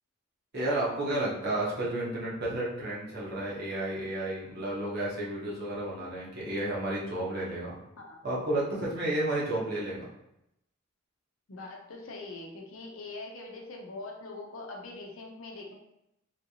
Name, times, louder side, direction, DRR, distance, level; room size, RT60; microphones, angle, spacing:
voice 1, 0.5-7.8 8.2-10.1, right 1 dB, 50° right, -6 dB, 1.0 m, -32 dB
voice 2, 11.5-15.7, left 2 dB, 75° left, 0 dB, 0.7 m, -42 dB
3.2 x 2.9 x 2.8 m, 0.83 s
head